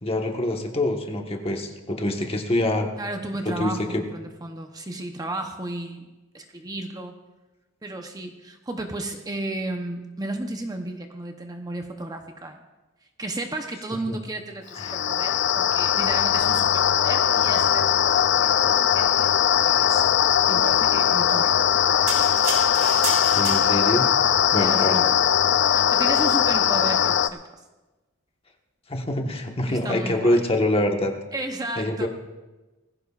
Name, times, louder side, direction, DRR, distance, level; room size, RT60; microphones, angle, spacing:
voice 1, 0.0-2.9 3.4-4.0 14.0-14.2 14.8-14.9 23.4-24.1 24.5-25.0 28.9-31.1 31.8-32.1, left 1 dB, 30° left, 3 dB, 1.3 m, -25 dB
voice 2, 3.0-6.1 6.3-7.1 7.8-12.6 13.2-20.0 20.5-22.1 22.8-23.4 24.6-25.1 25.6-27.6 29.7-30.4 31.3-32.1, right 2 dB, 20° right, 4 dB, 0.8 m, -34 dB
sound 1, 14.7-27.3, left 9 dB, 60° left, 0.4 m, -20 dB
sound 2, 22.1-24.0 24.7-24.8, right 4 dB, 80° right, 4.4 m, -31 dB
20.0 x 15.5 x 2.5 m, 1.1 s
head